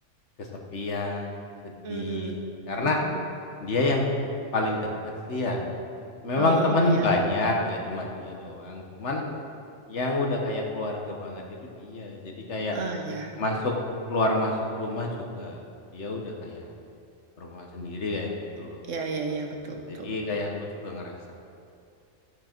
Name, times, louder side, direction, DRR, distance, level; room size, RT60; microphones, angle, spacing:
voice 1, 0.4-1.4 1.9-2.4 2.7-3.0 3.6-4.2 4.5-4.8 5.3-5.6 6.2-9.2 9.9-11.4 11.8-12.8 13.4-13.7 14.1-15.1 15.3-15.6 15.9-16.7 17.4-18.3 18.6-18.8 19.9-20.5 20.8-21.3, left 2 dB, 70° left, 0 dB, 1.6 m, -28 dB
voice 2, 1.8-2.4 2.8-3.2 6.4-7.1 12.7-13.3 18.9-20.4, right 3 dB, 85° right, 3 dB, 1.5 m, -33 dB
12.5 x 8.6 x 4.5 m, 2.5 s
omnidirectional pair, 1.3 m